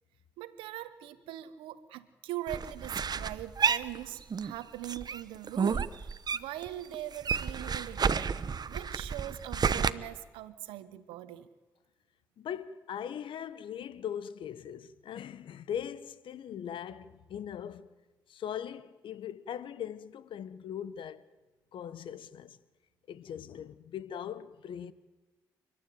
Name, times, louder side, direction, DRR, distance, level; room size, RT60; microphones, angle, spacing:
voice 1, 0.4-8.3 8.7-11.5, right 13 dB, 90° right, 1.1 m, -41 dB
sound 1, 2.5-4.5 4.8-6.7 6.9-9.9, right 6 dB, 50° right, 1.0 m, -31 dB
voice 2, 12.4-17.9 18.3-21.2 21.7-22.6 23.1-24.9, left 9 dB, 75° left, 1.1 m, -40 dB
29.0 x 12.0 x 9.3 m
supercardioid pair, 45°, 9 cm